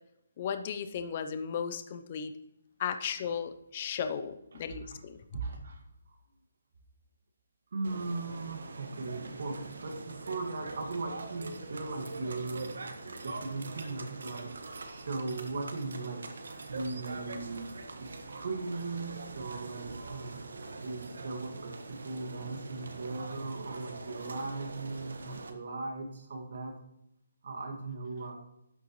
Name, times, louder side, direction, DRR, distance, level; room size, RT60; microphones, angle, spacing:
voice 1, 0.4-2.3 2.8-5.2, left 7 dB, 25° left, 9 dB, 0.5 m, -35 dB
voice 2, 5.3-5.8 6.1-6.2 7.7-20.5 20.8-26.8 27.4-28.4, right 3 dB, 55° right, 3 dB, 1.9 m, -38 dB
sound 1, 7.8-25.5, right 3 dB, 80° right, 1.3 m, -43 dB
12.0 x 6.7 x 3.1 m, 0.82 s
hypercardioid pair, 175°, 0 cm